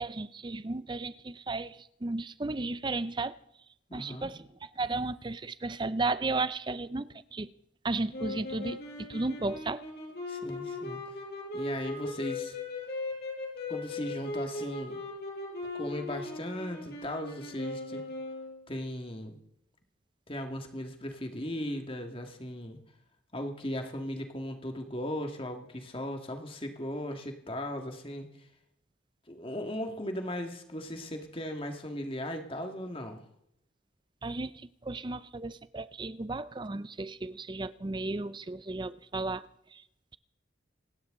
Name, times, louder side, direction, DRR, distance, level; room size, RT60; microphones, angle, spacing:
voice 1, 0.0-3.3 3.9-4.4 4.8-7.5 7.8-8.8 9.1-9.8 34.2-34.5 34.8-39.4, right 3 dB, 25° right, 0.5 m, -34 dB
voice 2, 3.9-4.3 10.3-11.2 11.5-12.6 13.7-15.0 15.7-18.0 18.7-19.4 20.3-22.8 23.3-28.3 29.3-33.2, left 1 dB, 25° left, 1.9 m, -37 dB
sound 1, 8.1-18.6, left 3 dB, 55° left, 5.3 m, -38 dB
27.0 x 12.0 x 3.8 m
head